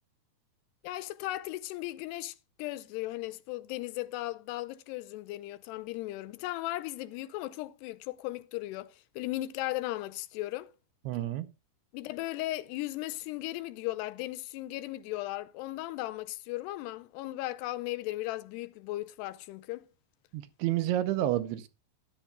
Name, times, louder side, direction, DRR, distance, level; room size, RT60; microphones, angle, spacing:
voice 1, 0.8-10.7 11.9-19.8, left 17 dB, 80° left, 2.6 m, -37 dB
voice 2, 11.1-11.5 20.3-21.7, right 13 dB, 80° right, 2.7 m, -30 dB
13.0 x 10.5 x 2.2 m
omnidirectional pair, 4.9 m